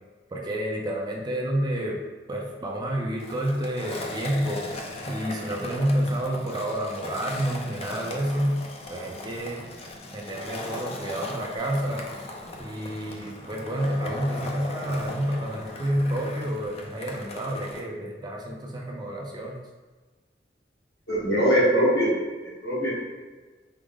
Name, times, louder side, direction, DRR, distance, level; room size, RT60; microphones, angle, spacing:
voice 1, 0.3-2.0 2.3-4.7 5.1-9.7 10.1-12.1 12.6-19.6, equal, 25° right, -1 dB, 0.4 m, -29 dB
Skateboard, 3.2-17.8, left 2 dB, 35° left, 0.4 m, -38 dB
voice 2, 21.1-22.1 22.6-22.9, equal, 70° left, -7 dB, 1.3 m, -21 dB
4.7 x 2.0 x 3.5 m, 1.3 s
head